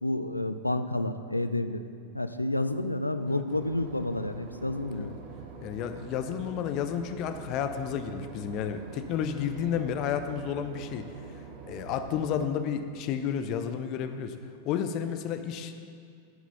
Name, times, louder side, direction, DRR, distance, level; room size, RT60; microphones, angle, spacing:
voice 1, 0.0-1.8 2.1-5.2, left 1 dB, 85° left, 10 dB, 0.3 m, -30 dB
Boat Water vehicle / Engine, 3.5-12.5, right 6 dB, 45° right, 0.8 m, -45 dB
voice 2, 5.6-11.1 11.7-14.4 14.6-15.7, left 8 dB, 40° left, 8 dB, 0.6 m, -31 dB
10.0 x 4.7 x 5.6 m, 2.4 s
figure-of-eight pair, 90°, 0 cm